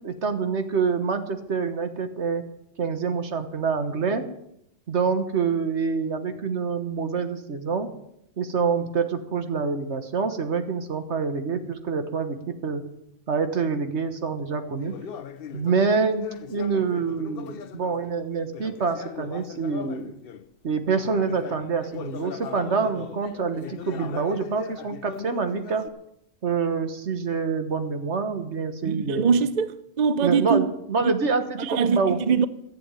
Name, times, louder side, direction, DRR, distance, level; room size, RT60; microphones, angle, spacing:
voice 1, 0.0-2.4 2.8-4.2 4.9-7.9 8.4-12.8 13.3-14.9 15.5-20.1 20.6-25.8 26.4-29.3 30.2-32.2, right 5 dB, 70° right, 1.6 m, -26 dB
Conversation, 14.8-20.5 21.0-25.9, left 7 dB, 55° left, 0.8 m, -39 dB
voice 2, 28.8-30.7 31.0-31.1 31.6-32.5, right 6 dB, 45° right, 0.6 m, -23 dB
14.5 x 7.9 x 9.0 m
omnidirectional pair, 1.2 m